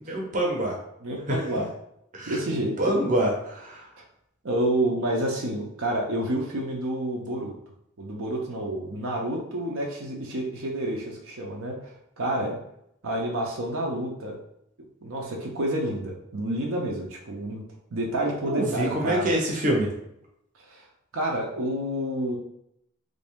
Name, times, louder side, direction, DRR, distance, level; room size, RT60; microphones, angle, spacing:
voice 1, 0.1-0.8 1.3-1.4 2.1-2.4 2.8-3.8 18.5-19.9, right 1 dB, 35° right, -1 dB, 0.8 m, -25 dB
voice 2, 1.0-1.7 2.3-2.9 4.4-7.5 8.0-12.6 13.0-14.4 15.0-17.6 17.9-19.3 20.6-20.9 21.1-22.4, right 1 dB, 70° right, -1 dB, 0.6 m, -29 dB
3.4 x 2.6 x 3.5 m, 0.76 s
head